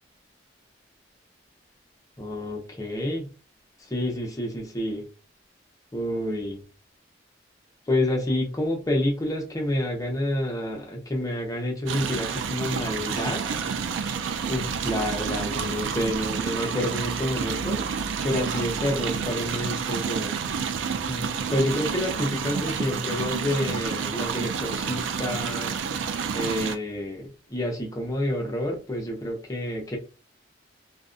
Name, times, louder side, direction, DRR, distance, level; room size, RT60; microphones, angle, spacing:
voice 1, 2.2-3.3 3.9-5.1 5.9-6.6 7.9-13.4 13.7-14.1 14.5-17.8 18.2-20.3 21.1-25.7 26.3-30.0, left 1 dB, 20° left, 0 dB, 0.6 m, -28 dB
sound 1, 11.9-26.8, right 6 dB, 75° right, 0.3 m, -29 dB
2.6 x 2.1 x 2.4 m, 0.34 s
head